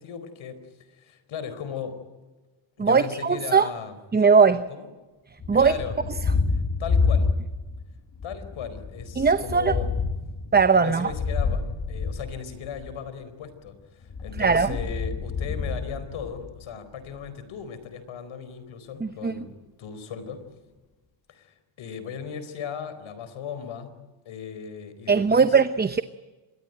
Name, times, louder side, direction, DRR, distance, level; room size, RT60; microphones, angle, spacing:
voice 1, 0.0-2.0 2.8-3.9 4.7-4.9 5.5-6.0 6.5-7.3 8.2-9.9 10.7-11.6 11.9-20.4 21.3-23.9 24.2-25.6, left 7 dB, 75° left, 4.6 m, -37 dB
voice 2, 2.8-3.7 4.1-4.6 5.5-5.7 9.2-9.8 10.5-11.1 14.4-14.8 19.0-19.3 25.1-26.0, right 5 dB, 20° right, 0.8 m, -19 dB
Thunder, 5.4-7.8 8.1-13.0 14.0-16.7, left 4 dB, 40° left, 2.6 m, -28 dB
26.0 x 22.5 x 9.2 m
cardioid pair, 100°, 48 cm